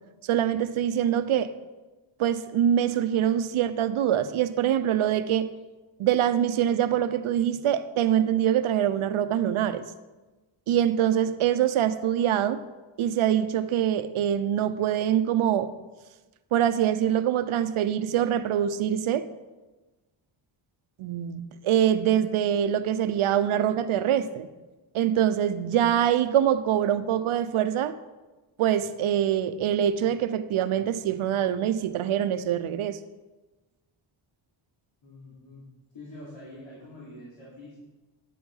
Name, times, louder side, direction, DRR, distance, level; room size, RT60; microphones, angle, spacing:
voice 1, 0.2-1.5 2.2-5.5 6.0-9.8 10.7-12.6 13.0-15.7 16.5-19.3 21.0-24.5 24.9-27.9 28.6-33.0, right 10 dB, 80° right, 12 dB, 0.8 m, -24 dB
voice 2, 35.0-35.7 35.9-37.8, left 1 dB, 65° left, -7 dB, 3.3 m, -45 dB
11.0 x 7.6 x 5.5 m, 1.2 s
cardioid pair, 110°, 48 cm